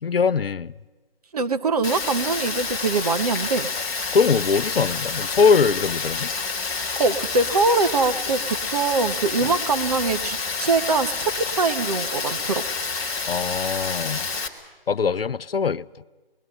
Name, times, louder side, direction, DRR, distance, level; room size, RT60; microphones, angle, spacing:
voice 1, 0.0-0.7 4.1-6.3 9.4-9.5 13.3-14.3 14.9-15.9, left 5 dB, 70° left, 0.6 m, -21 dB
voice 2, 1.3-3.7 7.0-12.6, right 3 dB, 40° right, 1.0 m, -23 dB
Rain, 1.8-14.5, left 4 dB, 15° left, 1.4 m, -28 dB
26.5 x 21.5 x 5.6 m
figure-of-eight pair, 150°, 30 cm